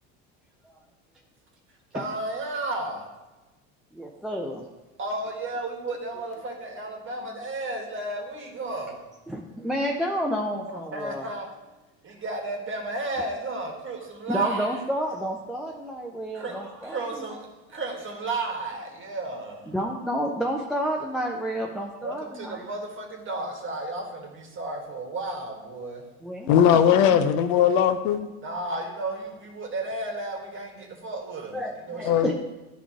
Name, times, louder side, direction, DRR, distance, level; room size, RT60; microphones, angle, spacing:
voice 1, 1.9-3.1 5.0-9.0 10.7-11.5 12.0-14.9 16.3-16.6 16.8-19.7 22.0-26.0 28.4-32.2, right 2 dB, 35° right, 2 dB, 1.6 m, -33 dB
voice 2, 3.9-4.7 9.3-11.3 14.3-17.4 19.7-22.6 26.2-26.8 31.5-32.3, equal, ahead, -1 dB, 0.6 m, -30 dB
voice 3, 26.5-28.3 32.0-32.3, left 9 dB, 70° left, 10 dB, 0.7 m, -19 dB
9.9 x 3.5 x 4.9 m, 1.1 s
supercardioid pair, 95°, 37 cm